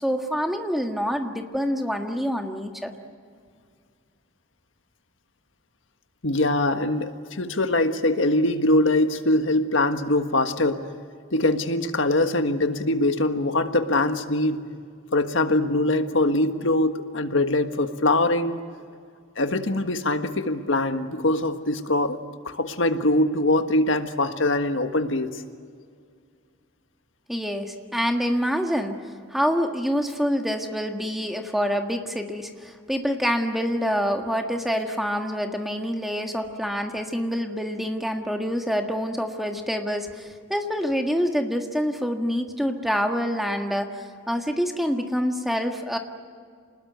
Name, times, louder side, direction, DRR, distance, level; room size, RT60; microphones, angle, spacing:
voice 1, 0.0-2.9 27.3-46.0, equal, ahead, 4 dB, 1.6 m, -26 dB
voice 2, 6.2-10.8 11.3-14.6 15.1-18.6 19.4-22.2 22.4-25.4, left 2 dB, 80° left, 8 dB, 1.6 m, -23 dB
27.0 x 20.0 x 9.3 m, 2.2 s
head